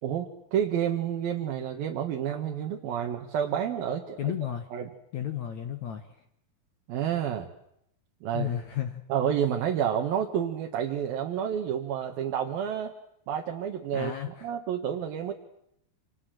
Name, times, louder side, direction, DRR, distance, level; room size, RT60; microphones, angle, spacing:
voice 1, 0.0-4.3 4.7-4.9 6.9-7.5 8.2-8.5 9.1-12.9 13.3-15.3, right 9 dB, 65° right, 2 dB, 3.2 m, -29 dB
voice 2, 4.2-4.7 5.1-6.2 8.3-9.0 13.9-14.5, left 10 dB, 60° left, 7 dB, 2.0 m, -33 dB
28.0 x 27.5 x 7.8 m, 0.76 s
omnidirectional pair, 4.9 m